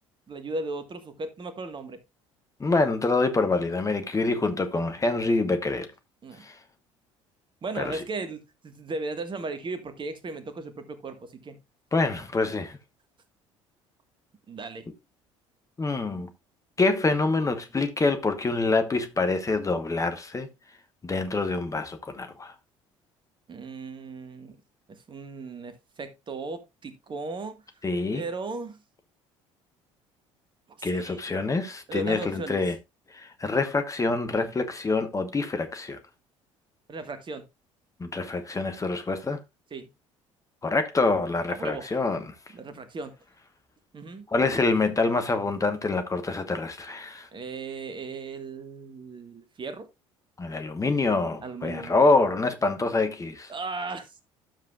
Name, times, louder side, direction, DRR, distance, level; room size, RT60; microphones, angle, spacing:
voice 1, 0.3-2.0 6.2-6.4 7.6-11.6 14.5-14.8 23.5-24.6 24.9-27.6 28.1-28.8 30.8-31.2 31.9-32.6 36.9-37.5 39.7-39.9 41.5-41.9 42.5-43.1 43.9-44.2 47.3-49.9 51.4-52.1 53.5-54.2, right 3 dB, 30° right, 1.5 m, -36 dB
voice 2, 2.6-5.9 6.4-6.6 7.8-8.0 11.9-12.8 15.8-16.3 16.8-20.5 21.0-22.5 27.8-28.2 30.8-32.8 33.1-36.0 38.0-39.4 40.6-42.2 44.3-47.3 50.4-53.5, left 3 dB, 20° left, 1.1 m, -26 dB
12.0 x 7.3 x 2.4 m
figure-of-eight pair, 55°, 16 cm